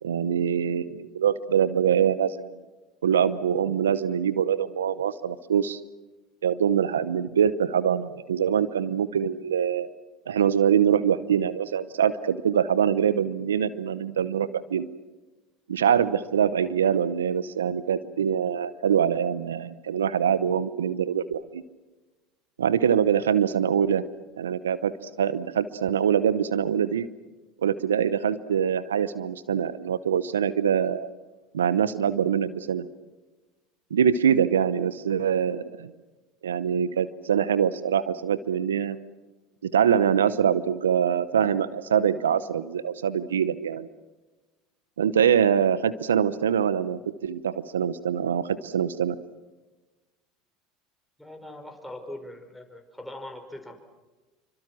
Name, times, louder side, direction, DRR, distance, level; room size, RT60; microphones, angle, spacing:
voice 1, 0.0-2.5 3.0-5.8 6.4-9.9 10.3-14.9 15.7-21.6 22.6-24.0 24.4-27.1 27.6-31.1 31.5-32.9 33.9-35.9 36.4-39.0 39.6-43.9 45.0-49.2, right 8 dB, 90° right, 16 dB, 0.8 m, -24 dB
voice 2, 51.2-53.7, left 1 dB, 5° left, 3 dB, 5.3 m, -41 dB
27.5 x 25.0 x 6.2 m, 1.2 s
hypercardioid pair, 80°, 0 cm